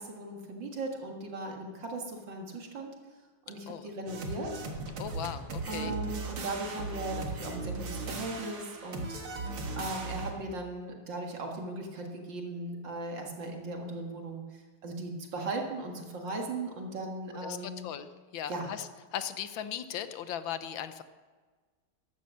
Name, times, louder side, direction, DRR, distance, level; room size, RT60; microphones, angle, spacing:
voice 1, 0.0-2.9 3.5-4.7 5.7-9.2 9.8-14.4 14.8-17.9 18.5-18.7, right 2 dB, 60° right, 1 dB, 2.4 m, -38 dB
sound 1, 4.1-10.3, right 3 dB, 85° right, 2.6 m, -37 dB
voice 2, 5.0-5.9 17.4-21.0, left 9 dB, 75° left, 11 dB, 1.5 m, -38 dB
14.0 x 11.0 x 6.4 m, 1.4 s
omnidirectional pair, 2.3 m